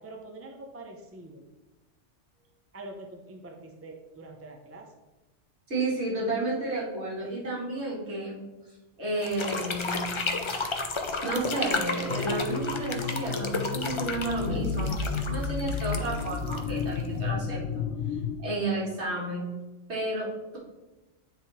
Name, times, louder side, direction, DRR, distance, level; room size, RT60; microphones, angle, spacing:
voice 1, 0.0-1.4 2.7-4.9, right 2 dB, 15° right, 1 dB, 0.6 m, -44 dB
voice 2, 5.7-8.4 9.0-10.6 11.2-17.6 18.4-19.5 19.9-20.6, right 2 dB, 65° right, -5 dB, 2.4 m, -32 dB
sound 1, 9.2-17.2, left 3 dB, 40° left, 0.4 m, -33 dB
sound 2, 12.1-18.3, left 5 dB, 85° left, 1.1 m, -32 dB
9.5 x 3.7 x 4.2 m, 1.1 s
omnidirectional pair, 1.2 m